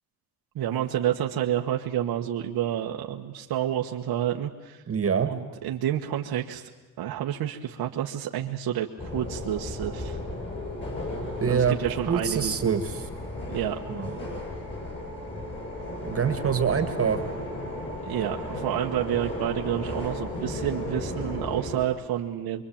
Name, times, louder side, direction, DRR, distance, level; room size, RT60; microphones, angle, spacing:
voice 1, 0.5-4.8 5.3-6.7 7.0-8.9 9.1-10.2 11.5-12.8 13.5-13.8 18.0-22.6, right 11 dB, 75° right, 1 dB, 1.6 m, -29 dB
voice 2, 4.9-5.3 11.4-11.8 12.1-13.0 13.9-14.2 16.0-17.2, right 7 dB, 35° right, 9 dB, 2.0 m, -25 dB
sound 1, 9.0-21.9, left 1 dB, 30° left, 7.7 m, -34 dB
26.0 x 23.0 x 8.8 m, 1.2 s
cardioid pair, 140°, 38 cm